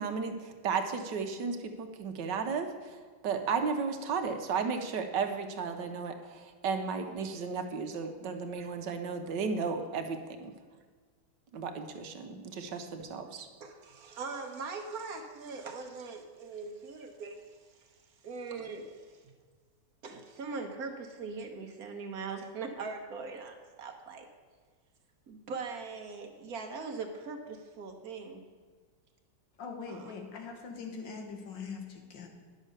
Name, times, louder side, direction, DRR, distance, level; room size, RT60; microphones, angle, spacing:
voice 1, 0.0-10.5 11.5-13.5, right 5 dB, 75° right, 7 dB, 1.5 m, -34 dB
voice 2, 13.6-18.0 18.2-19.2 20.0-24.3 25.3-28.4 29.9-30.1, right 4 dB, 60° right, 4 dB, 1.4 m, -41 dB
voice 3, 29.6-32.3, left 5 dB, 90° left, 3 dB, 2.0 m, -42 dB
10.5 x 6.4 x 6.5 m, 1.5 s
omnidirectional pair, 1.9 m